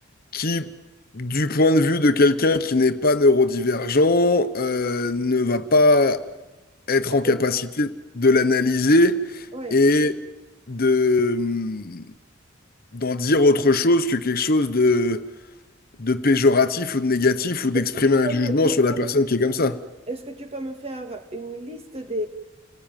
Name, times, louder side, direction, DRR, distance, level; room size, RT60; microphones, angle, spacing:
voice 1, 0.3-0.7 1.1-6.2 6.9-9.4 9.7-10.1 10.7-12.1 12.9-15.2 16.0-19.8, left 2 dB, 45° left, 1.1 m, -20 dB
voice 2, 6.9-7.4 9.5-9.8 17.7-19.2 20.1-22.3, right 2 dB, 30° right, 2.4 m, -33 dB
29.5 x 19.0 x 9.2 m
head